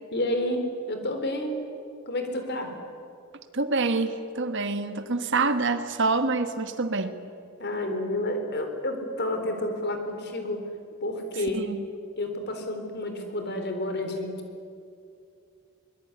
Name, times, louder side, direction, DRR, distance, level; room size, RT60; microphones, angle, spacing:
voice 1, 0.1-1.5 2.1-2.7 7.6-10.7 11.0-11.6 12.2-14.3, left 1 dB, 50° left, 6 dB, 3.9 m, -30 dB
voice 2, 3.5-7.2 11.5-11.8, right 3 dB, 55° right, 10 dB, 1.4 m, -26 dB
23.0 x 22.0 x 9.7 m, 2.5 s
head